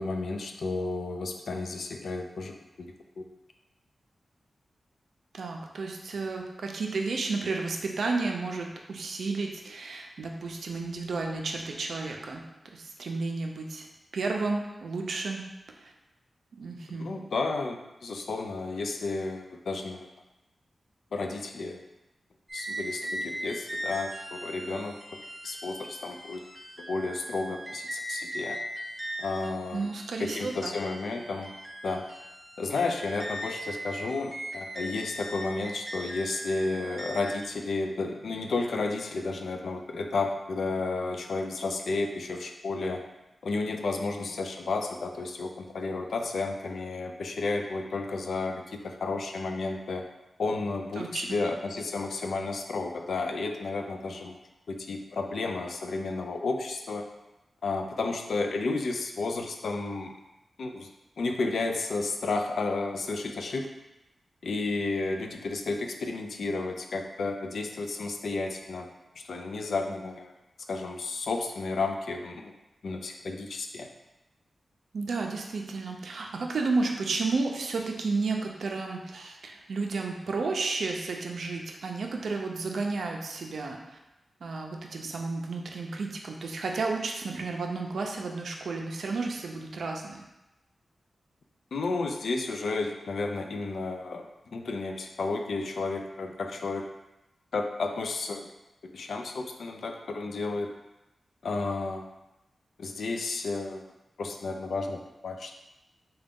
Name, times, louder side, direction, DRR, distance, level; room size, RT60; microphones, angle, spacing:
voice 1, 0.0-3.2 17.0-20.1 21.1-21.8 22.5-25.0 25.4-26.4 26.8-28.6 29.2-29.9 30.2-31.5 31.8-32.0 32.6-43.0 43.4-50.0 50.4-54.4 54.7-57.0 57.6-60.1 60.6-60.9 61.2-63.7 64.4-68.9 69.3-70.3 70.7-72.5 72.8-73.9 91.7-96.8 97.5-98.5 98.9-100.7 101.4-102.1 102.8-103.9 104.2-105.5, left 3 dB, 80° left, 4 dB, 0.3 m, -32 dB
voice 2, 5.3-12.4 12.7-13.9 14.1-15.4 15.8-15.9 16.6-17.1 29.7-30.7 51.0-51.4 74.9-83.8 84.4-90.2, right 3 dB, 80° right, 2 dB, 0.4 m, -32 dB
sound 1, 22.5-37.5, right 1 dB, 20° right, 0.6 m, -39 dB
3.8 x 2.3 x 3.5 m, 0.97 s
wide cardioid pair, 90°, 0 cm